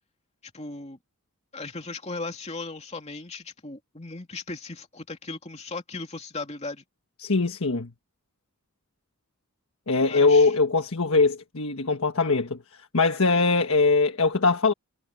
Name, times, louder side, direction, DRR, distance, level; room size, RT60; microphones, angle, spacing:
voice 1, 0.4-1.0 1.5-6.8 10.1-10.5, left 3 dB, 30° left, 2.9 m, -37 dB
voice 2, 7.2-7.9 9.9-14.7, left 3 dB, 75° left, 1.4 m, -22 dB
head